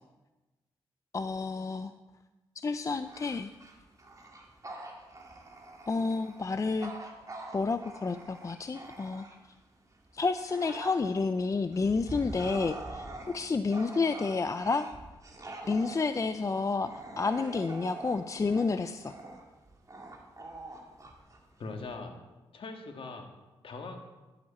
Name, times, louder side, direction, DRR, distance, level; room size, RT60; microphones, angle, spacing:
voice 1, 1.1-1.9 2.6-3.5 5.9-6.9 7.5-9.3 10.1-13.1 13.3-14.9 15.7-16.9 17.2-19.1, left 4 dB, 30° left, 10 dB, 0.4 m, -30 dB
Bark / Growling, 3.0-9.6 10.1-21.9, right 2 dB, 30° right, 2.0 m, -45 dB
voice 2, 21.6-22.2 22.5-23.3 23.6-24.0, left 3 dB, 60° left, 4 dB, 1.7 m, -41 dB
10.5 x 7.7 x 4.2 m, 1.1 s
supercardioid pair, 55°, 10 cm